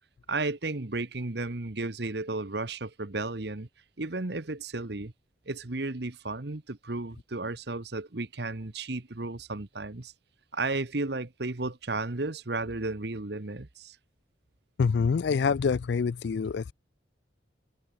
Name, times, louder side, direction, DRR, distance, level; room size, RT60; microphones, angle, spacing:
voice 1, 0.3-3.7 4.0-5.1 5.5-10.1 10.5-14.0, right 3 dB, 55° right, 1.2 m, -33 dB
voice 2, 14.8-16.7, left 5 dB, 60° left, 0.4 m, -26 dB
head